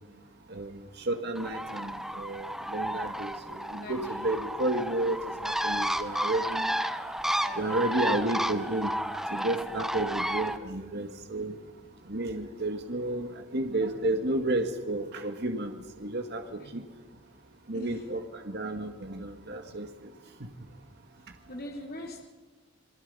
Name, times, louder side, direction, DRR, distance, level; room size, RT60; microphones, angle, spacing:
voice 1, 0.5-6.7 7.6-8.9 9.3-11.6 12.1-15.7 16.0-16.8 17.7-19.9 20.4-20.5, right 2 dB, 60° right, 5 dB, 1.8 m, -32 dB
Bird, 1.3-10.6, equal, ahead, 1.1 m, -32 dB
voice 2, 3.7-4.3 7.4-8.2 16.6-16.7 17.7-18.0 21.5-22.3, equal, 55° left, 1 dB, 3.3 m, -42 dB
28.0 x 22.0 x 5.6 m, 1.4 s
head